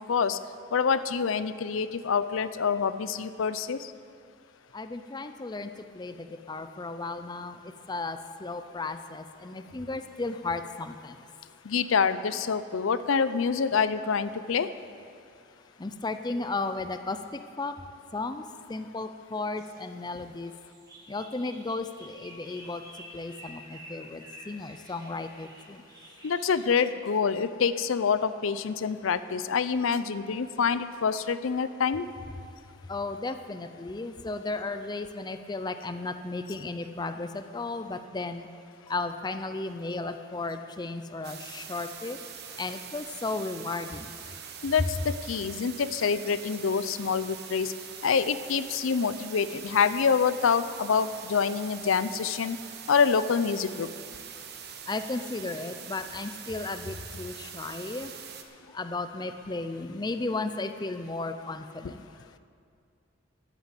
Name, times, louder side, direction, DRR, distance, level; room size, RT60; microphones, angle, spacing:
voice 1, 0.1-0.4 0.7-3.8 11.7-14.7 26.2-32.0 44.6-47.7 48.0-52.6 52.9-53.9, left 6 dB, 80° left, 13 dB, 0.5 m, -26 dB
voice 2, 4.7-7.6 7.9-11.2 15.8-17.2 17.6-17.7 18.1-18.4 18.7-20.5 21.1-22.8 23.1-25.8 32.9-38.5 38.9-42.2 42.6-44.1 54.9-58.1 58.7-62.1, left 3 dB, 20° left, 9 dB, 0.5 m, -34 dB
sound 1, 19.6-26.8, equal, 20° right, 2.1 m, -50 dB
sound 2, 41.2-58.4, right 8 dB, 55° right, 1.1 m, -43 dB
11.5 x 9.3 x 8.2 m, 2.3 s
head